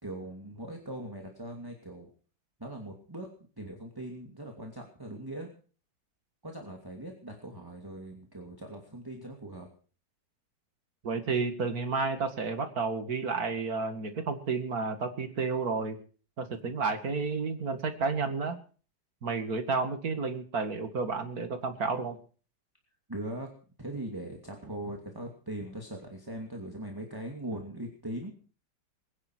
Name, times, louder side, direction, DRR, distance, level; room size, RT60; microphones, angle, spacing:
voice 1, 0.0-2.1 2.6-3.3 3.6-5.5 6.4-9.7 23.1-23.5 23.8-28.3, right 1 dB, 10° right, 2 dB, 2.6 m, -40 dB
voice 2, 11.0-16.0 16.4-18.6 19.2-22.2, right 4 dB, 55° right, 8 dB, 2.4 m, -31 dB
21.5 x 10.0 x 6.2 m, 0.41 s
omnidirectional pair, 2.0 m